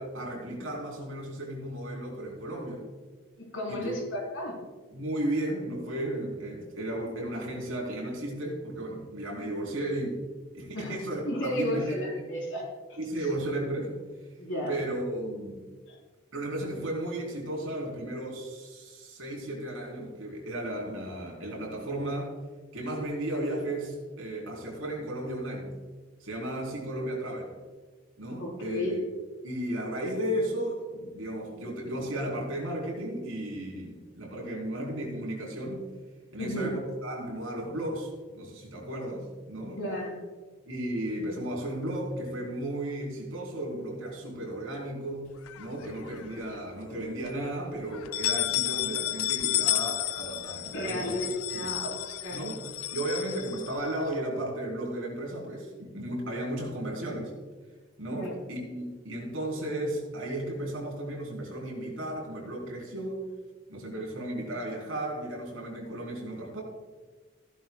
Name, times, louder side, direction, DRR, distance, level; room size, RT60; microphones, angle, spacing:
voice 1, 0.0-2.8 3.7-4.0 4.9-10.2 10.5-12.2 13.0-14.0 14.7-15.6 16.3-22.3 22.7-25.7 26.2-27.5 28.2-29.0 29.4-35.8 36.3-39.8 40.7-45.3 45.6-51.1 51.5-51.7 52.3-52.6 52.9-57.3 58.0-63.2 63.7-66.6, right 1 dB, 70° right, -2 dB, 3.8 m, -34 dB
voice 2, 3.4-4.6 10.7-11.0 11.3-12.7 14.4-14.8 15.9-16.0 28.4-29.0 36.4-36.7 39.8-40.2 50.7-52.4 58.2-58.3, left 1 dB, 65° left, -2 dB, 3.9 m, -33 dB
sound 1, 45.5-46.4 46.8-46.9 47.2-47.3 47.9-54.1, left 13 dB, 85° left, 0.4 m, -32 dB
15.5 x 11.0 x 2.3 m, 1.4 s
head